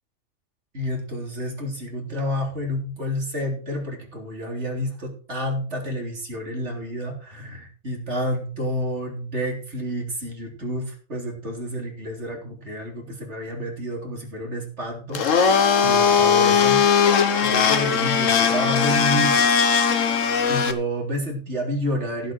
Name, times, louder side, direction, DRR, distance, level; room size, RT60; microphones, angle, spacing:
voice 1, 0.7-16.8 17.4-19.6 20.5-22.3, equal, 50° right, 0 dB, 3.9 m, -29 dB
Domestic sounds home sounds, 15.1-20.7, left 6 dB, 60° left, 1.4 m, -19 dB
15.5 x 8.2 x 4.6 m, 0.42 s
omnidirectional pair, 1.6 m